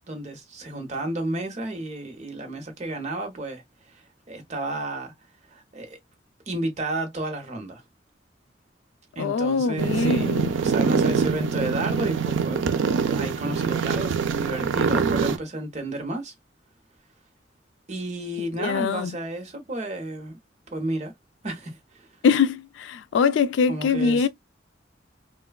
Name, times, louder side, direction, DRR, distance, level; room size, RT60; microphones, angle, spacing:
voice 1, 0.1-3.6 3.9-5.1 5.5-6.0 6.5-7.8 9.2-12.8 13.1-16.3 17.9-20.4 20.7-21.1 21.4-22.1 23.7-24.3, right 1 dB, 40° right, 0.8 m, -32 dB
voice 2, 9.2-10.5 18.6-19.1 22.2-24.3, left 5 dB, 80° left, 0.3 m, -23 dB
sound 1, 9.8-15.4, right 5 dB, 90° right, 0.4 m, -24 dB
3.1 x 2.2 x 2.2 m
head